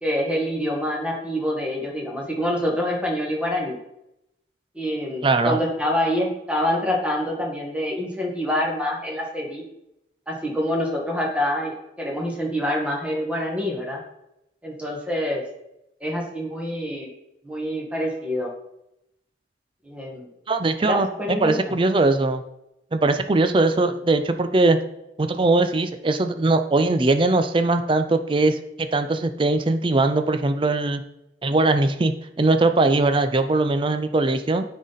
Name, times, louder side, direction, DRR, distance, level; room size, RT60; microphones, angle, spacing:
voice 1, 0.0-3.8 4.7-9.6 10.3-14.0 14.6-15.4 16.0-17.1 17.4-18.5 19.8-20.3 20.8-21.8, left 1 dB, 5° right, -2 dB, 1.4 m, -26 dB
voice 2, 5.2-5.6 20.5-22.4 22.9-24.8 25.2-31.0 31.4-34.6, right 2 dB, 25° right, 9 dB, 0.4 m, -20 dB
9.3 x 4.0 x 4.0 m, 0.84 s
head